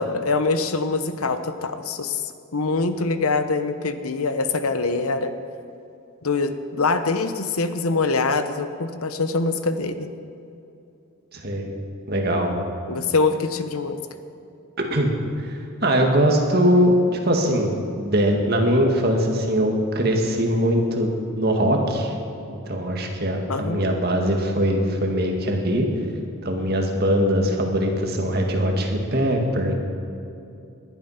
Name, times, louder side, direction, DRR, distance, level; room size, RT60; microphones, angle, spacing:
voice 1, 0.0-2.2 2.5-5.3 6.2-10.1 12.9-14.0 23.5-23.9, left 3 dB, 90° left, 10 dB, 1.0 m, -24 dB
voice 2, 11.3-11.7 12.1-12.5 14.8-15.1 15.4-16.9 17.2-22.1 22.5-25.9 26.4-29.7, equal, 45° right, 2 dB, 2.0 m, -21 dB
19.5 x 11.5 x 5.8 m, 2.7 s
head